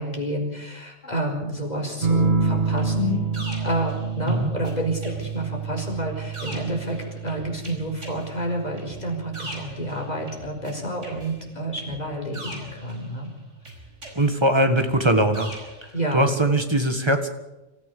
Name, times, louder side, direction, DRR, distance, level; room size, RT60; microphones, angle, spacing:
voice 1, 0.0-3.3 3.6-13.3 15.9-16.2, right 1 dB, 35° left, 1 dB, 4.8 m, -29 dB
sound 1, 2.0-11.1 12.5-13.1, right 4 dB, 50° right, 2.7 m, -29 dB
sound 2, 2.8-4.7 5.0-10.7 11.0-13.3 13.7-15.9, right 1 dB, 75° right, 5.4 m, -42 dB
voice 2, 14.2-15.5 15.8-17.3, right 1 dB, 20° right, 6 dB, 1.7 m, -21 dB
26.0 x 14.5 x 6.9 m, 1.0 s
omnidirectional pair, 1.3 m